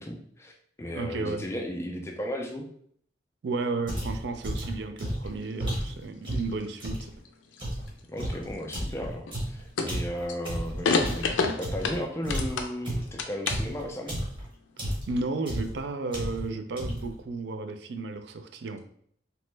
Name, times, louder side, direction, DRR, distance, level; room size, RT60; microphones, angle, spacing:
voice 1, 0.0-2.7 8.1-11.3 11.6-14.2, equal, 15° left, 2 dB, 0.3 m, -35 dB
voice 2, 0.9-1.5 3.4-7.1 15.1-18.8, right 3 dB, 65° right, 8 dB, 0.3 m, -33 dB
sound 1, 3.9-7.1 7.6-12.0 12.2-14.5 14.8-15.2 15.5-15.8 16.1-16.5 16.8-17.2, equal, 25° right, 0.8 m, -33 dB
sound 2, 5.3-5.9 6.3-7.9 8.2-8.7 9.2-9.5 9.8-10.3 10.8-12.8 13.1-13.8, left 4 dB, 90° left, 0.4 m, -29 dB
2.9 x 2.1 x 3.1 m, 0.64 s
head